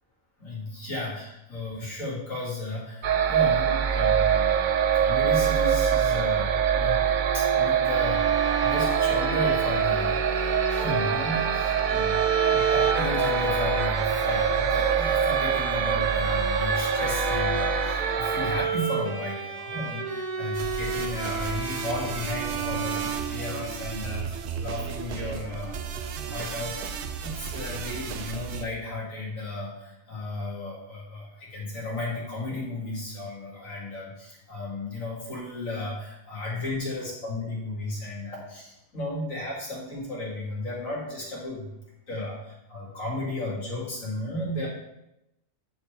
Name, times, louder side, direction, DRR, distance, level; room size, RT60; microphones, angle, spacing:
voice 1, 0.4-7.0 7.3-12.2 12.5-26.8 27.2-41.7 42.1-44.7, left 2 dB, 80° left, -6 dB, 2.8 m, -34 dB
sound 1, 3.0-18.6, right 8 dB, 85° right, 0.4 m, -24 dB
Bowed string instrument, 7.8-23.9, right 4 dB, 35° right, 0.9 m, -31 dB
sound 2, 20.5-28.7, right 6 dB, 65° right, 0.8 m, -34 dB
10.0 x 4.4 x 3.5 m, 0.85 s
omnidirectional pair, 1.4 m